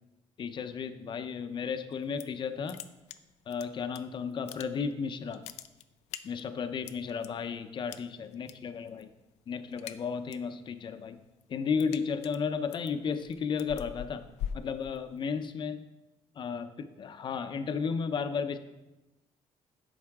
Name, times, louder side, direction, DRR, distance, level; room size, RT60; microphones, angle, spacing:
voice 1, 0.4-2.8 3.5-5.4 6.2-9.1 9.5-11.2 11.5-14.2 14.5-15.9 16.4-18.6, left 6 dB, 45° left, 10 dB, 0.7 m, -34 dB
sound 1, 1.9-2.4 2.7-4.0 4.3-5.0 5.3-7.3 7.9-8.5 8.8-9.2 9.5-10.5 10.9-15.4, left 9 dB, 85° left, 0.5 m, -42 dB
11.0 x 7.3 x 3.6 m, 1.0 s
cardioid pair, 115°, 11 cm